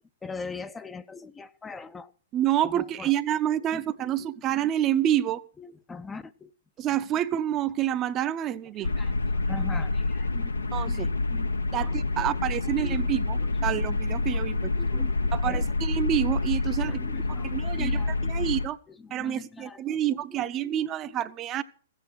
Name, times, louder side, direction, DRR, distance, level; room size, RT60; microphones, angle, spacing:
voice 1, 0.2-2.1 2.6-3.1 3.7-4.1 5.6-6.5 8.8-10.5 10.8-11.5 11.7-12.4 12.7-13.1 13.4-13.5 13.7-13.8 14.3-15.6 16.7-18.2 18.9-21.1, left 4 dB, 10° left, 0.5 m, -42 dB
voice 2, 2.3-5.4 6.8-8.9 10.7-11.1 11.7-14.7 15.3-17.0 17.3-18.8 19.1-21.6, right 11 dB, 30° right, 0.6 m, -28 dB
sound 1, 8.8-18.7, left 3 dB, 90° left, 0.9 m, -27 dB
15.0 x 8.2 x 6.0 m
hypercardioid pair, 120°, 0 cm